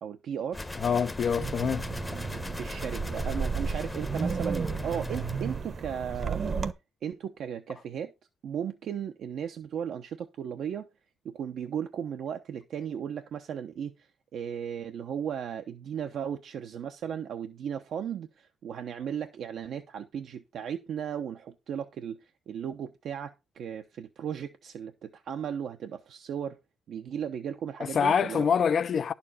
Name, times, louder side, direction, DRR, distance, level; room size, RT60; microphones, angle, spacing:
voice 1, 0.0-0.7 2.3-6.4 7.0-8.1 8.4-10.9 11.2-26.6 26.9-28.5, right 8 dB, 70° right, 1.0 m, -36 dB
sound 1, 0.5-5.6, left 1 dB, 15° left, 0.9 m, -38 dB
voice 2, 0.8-1.8 27.9-29.1, left 7 dB, 55° left, 0.6 m, -25 dB
Wind, 1.2-6.7, right 5 dB, 40° right, 1.1 m, -33 dB
11.0 x 7.1 x 4.2 m
cardioid pair, 90°, 0 cm